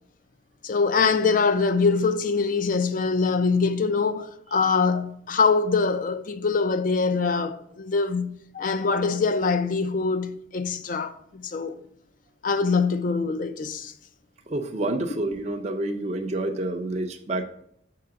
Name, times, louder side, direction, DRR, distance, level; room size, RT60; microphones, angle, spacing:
voice 1, 0.6-11.8 12.4-13.9, left 4 dB, 45° left, 0.5 m, -24 dB
voice 2, 14.5-17.4, right 2 dB, 35° right, 0.6 m, -28 dB
6.5 x 3.8 x 5.7 m
head